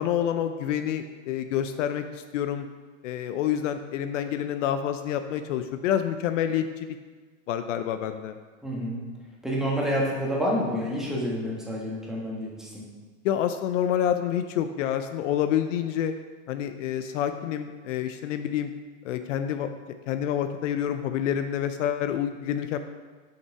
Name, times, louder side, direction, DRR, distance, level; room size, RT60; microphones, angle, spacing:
voice 1, 0.0-2.7 3.0-7.0 7.5-8.4 13.2-16.1 16.5-18.7 19.0-19.7 20.1-22.8, left 10 dB, 65° left, 9 dB, 0.6 m, -28 dB
voice 2, 8.6-9.0 9.4-12.8, equal, ahead, -4 dB, 1.3 m, -28 dB
6.6 x 5.6 x 4.6 m, 1.4 s
supercardioid pair, 150°, 40 cm